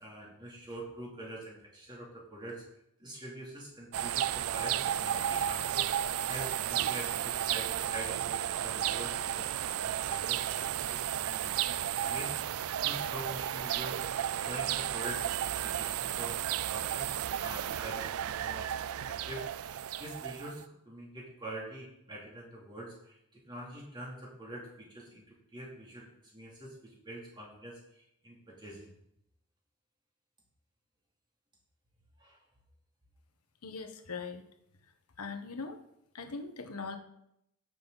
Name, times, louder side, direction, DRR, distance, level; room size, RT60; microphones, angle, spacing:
voice 1, 0.0-2.6 3.0-5.9 6.3-12.5 12.8-14.0 14.3-28.9 32.2-32.4, right 1 dB, 20° right, -3 dB, 3.1 m, -45 dB
sound 1, 3.9-20.6, right 11 dB, 75° right, 0.4 m, -33 dB
voice 2, 33.6-34.4 35.2-35.8 36.1-37.0, left 4 dB, 90° left, 6 dB, 1.3 m, -40 dB
17.0 x 6.7 x 4.1 m, 0.80 s
head